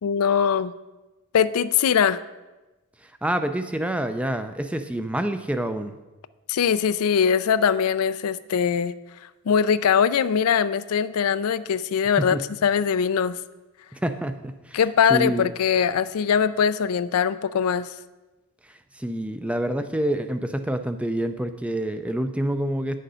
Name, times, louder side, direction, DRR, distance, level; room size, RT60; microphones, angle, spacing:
voice 1, 0.0-0.7 1.3-2.2 6.5-8.9 9.5-13.4 14.7-17.9, left 7 dB, 85° left, 15 dB, 0.4 m, -21 dB
voice 2, 3.0-5.9 12.2-12.4 13.9-14.8 15.1-15.5 18.6-23.0, right 1 dB, 5° right, 9 dB, 0.4 m, -27 dB
9.1 x 6.5 x 5.5 m, 1.1 s
head